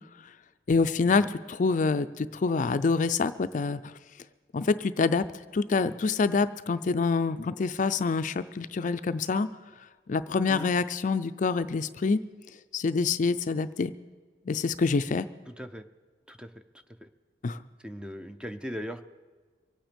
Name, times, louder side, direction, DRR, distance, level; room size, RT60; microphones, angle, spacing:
voice 1, 0.7-4.0 4.5-5.3 5.5-9.5 10.1-12.2 12.7-13.9 14.5-15.3 17.4-17.6, left 4 dB, 45° left, 12 dB, 0.4 m, -26 dB
voice 2, 15.5-15.9 16.3-16.5 17.0-17.1 17.8-19.0, equal, 5° right, 9 dB, 0.6 m, -39 dB
24.0 x 8.9 x 5.1 m, 1.4 s
head